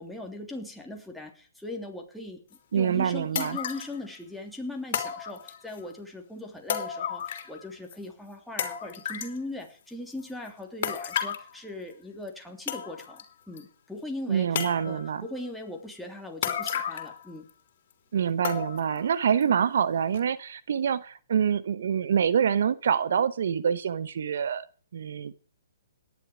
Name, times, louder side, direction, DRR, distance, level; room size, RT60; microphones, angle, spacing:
voice 1, 0.0-2.4 2.7-17.5, left 1 dB, ahead, 0 dB, 3.1 m, -39 dB
sound 1, 2.5-2.6 3.3-4.0 4.9-5.8 6.7-7.6 7.9-8.0 8.6-9.4 10.8-11.5 12.3-12.4 12.7-13.2 13.6-13.7 14.5-15.1 16.4-17.2 17.5-17.6 18.4-19.0 19.4-19.5 20.1-20.2, left 8 dB, 50° left, 3.3 m, -32 dB
voice 2, 2.7-3.6 14.3-15.2 18.1-24.6 24.9-25.3, right 7 dB, 65° right, 15 dB, 0.9 m, -26 dB
18.0 x 11.0 x 5.0 m, 0.41 s
hypercardioid pair, 135°, 0 cm